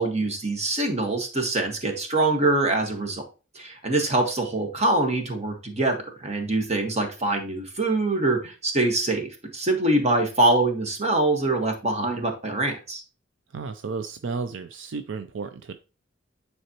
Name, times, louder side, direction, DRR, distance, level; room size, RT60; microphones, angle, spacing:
voice 1, 0.0-3.2 3.5-13.0, right 2 dB, 35° right, 1.4 m, -24 dB
voice 2, 13.5-15.7, right 4 dB, 70° right, 0.5 m, -33 dB
9.4 x 4.2 x 2.9 m
head